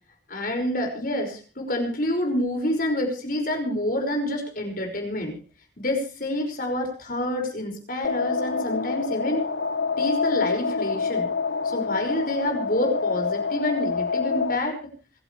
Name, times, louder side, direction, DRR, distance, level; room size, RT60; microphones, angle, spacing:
voice 1, 0.3-5.4 5.8-9.5 10.0-11.3 11.6-14.9, left 1 dB, 50° left, 3 dB, 5.6 m, -27 dB
sound 1, 8.0-14.6, left 5 dB, 70° left, 0.7 m, -27 dB
26.5 x 12.0 x 3.3 m, 0.35 s
head